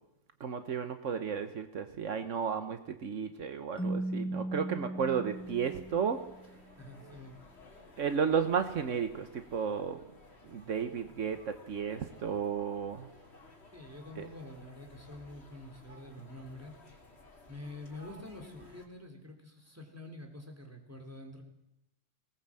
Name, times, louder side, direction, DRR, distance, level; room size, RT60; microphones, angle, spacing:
voice 1, 0.4-6.2 8.0-10.0 10.5-13.1 14.2-14.3, right 6 dB, 75° right, 9 dB, 1.4 m, -33 dB
Keyboard (musical), 3.8-6.5, right 1 dB, 5° left, 1.2 m, -37 dB
sound 1, 5.3-18.9, left 2 dB, 55° left, 3.1 m, -56 dB
voice 2, 6.8-7.4 13.7-16.7 17.5-21.4, left 2 dB, 10° right, 2 dB, 3.5 m, -47 dB
20.0 x 19.0 x 7.6 m, 0.87 s
omnidirectional pair, 1.3 m